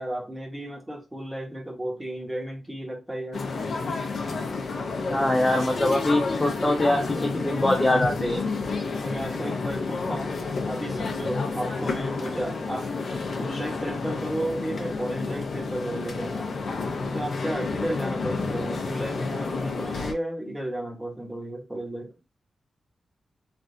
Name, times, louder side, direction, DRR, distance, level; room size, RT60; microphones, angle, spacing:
voice 1, 0.0-3.5 9.0-10.4 10.7-16.5 17.0-22.1, right 1 dB, 10° right, 1.0 m, -33 dB
sound 1, 3.3-20.1, left 4 dB, 65° left, 0.7 m, -30 dB
voice 2, 5.1-8.4, left 1 dB, 10° left, 0.4 m, -23 dB
3.3 x 2.4 x 2.6 m
wide cardioid pair, 160°, 0 cm